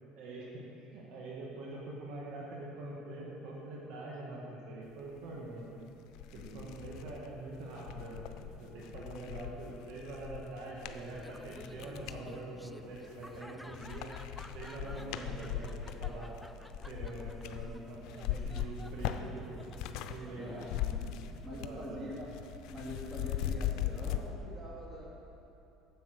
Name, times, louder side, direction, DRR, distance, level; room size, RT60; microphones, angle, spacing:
voice 1, 0.2-5.8 6.3-8.3 8.6-14.1 14.5-16.3 16.8-19.6 20.1-20.5 21.5-22.1, right 2 dB, 70° right, -3 dB, 1.9 m, -44 dB
sound 1, 5.6-5.7 6.1-12.2 12.8-13.4 13.7-20.2 20.4-21.8 22.1-24.2, left 11 dB, 70° left, 0.5 m, -39 dB
voice 2, 6.3-6.7 14.8-15.0 20.3-21.0 21.4-22.3 22.7-25.1, equal, 25° right, -5 dB, 2.9 m, -44 dB
sound 2, 6.6-23.3, left 5 dB, 45° left, 0.8 m, -57 dB
Laughter, 11.1-21.5, equal, ahead, 0.4 m, -54 dB
9.6 x 7.8 x 6.6 m, 2.8 s
supercardioid pair, 105°, 0 cm